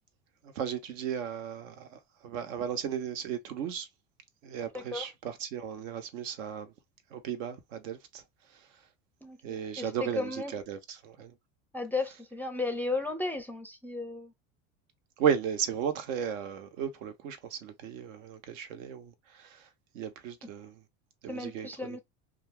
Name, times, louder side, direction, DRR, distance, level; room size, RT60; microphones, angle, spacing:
voice 1, 0.4-3.9 4.4-6.7 7.1-8.2 9.4-11.3 15.2-19.7 19.9-20.8 21.2-22.0, right 8 dB, 80° right, 0.9 m, -35 dB
voice 2, 4.7-5.1 9.2-9.4 9.8-10.5 11.7-14.3 21.3-22.0, left 3 dB, 5° left, 0.4 m, -34 dB
2.4 x 2.3 x 3.3 m
supercardioid pair, 110°, 38 cm